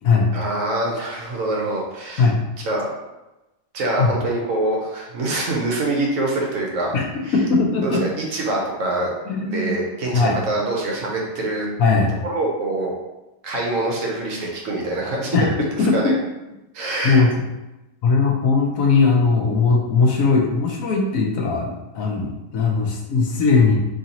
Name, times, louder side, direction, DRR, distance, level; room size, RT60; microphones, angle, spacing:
voice 1, 0.3-2.3 2.6-2.9 3.7-6.9 7.2-7.3 7.8-9.1 9.5-11.7 12.2-12.9 13.4-15.4 15.8-16.1 16.7-17.3, right 2 dB, 75° right, -2 dB, 1.2 m, -25 dB
voice 2, 7.3-8.0 9.3-9.7 10.1-10.4 11.8-12.1 15.3-15.5 15.8-16.0 17.0-17.3 18.0-23.8, left 4 dB, 80° left, -1 dB, 1.1 m, -19 dB
3.9 x 3.1 x 2.9 m, 1.0 s
omnidirectional pair, 1.4 m